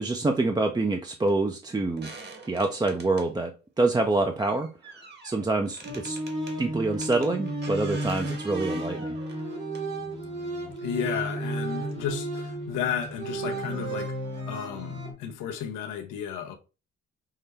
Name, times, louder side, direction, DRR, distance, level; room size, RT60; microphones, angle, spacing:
voice 1, 0.0-2.1 2.5-4.7 5.2-6.2 6.6-9.2, right 2 dB, 15° right, 0.4 m, -26 dB
sound 1, 1.3-1.4 2.0-3.3 4.4-6.6 6.9-10.2 11.3-11.4 13.0-13.1 13.5-13.6 13.9-14.0, right 3 dB, 35° right, 1.1 m, -45 dB
sound 2, 5.8-15.1, right 1 dB, 80° right, 2.5 m, -33 dB
voice 2, 10.8-14.2 14.5-16.6, left 8 dB, 90° left, 0.7 m, -33 dB
5.5 x 2.1 x 3.3 m
cardioid pair, 90°, 30 cm